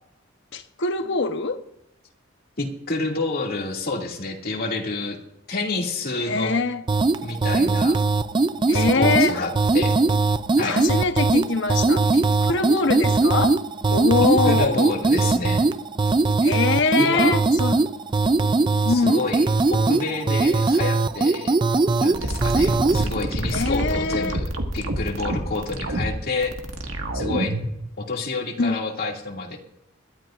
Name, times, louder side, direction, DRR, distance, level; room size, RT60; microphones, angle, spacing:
voice 1, 0.5-1.6 6.2-6.8 8.7-9.5 10.6-13.6 13.9-14.8 16.4-17.9 18.8-19.3 23.5-24.4 28.6-28.8, left 3 dB, 65° left, 1.0 m, -23 dB
voice 2, 2.6-5.2 5.5-6.5 7.2-8.0 8.7-9.9 10.6-10.8 14.5-15.7 16.9-17.4 18.9-21.6 22.0-24.5 24.7-26.5 27.1-27.5 28.0-29.6, left 3 dB, 50° left, 2.4 m, -28 dB
sound 1, 6.9-23.1, right 3 dB, 25° right, 0.4 m, -20 dB
sound 2, 22.1-27.7, right 1 dB, 90° right, 1.8 m, -27 dB
21.5 x 12.5 x 2.5 m
head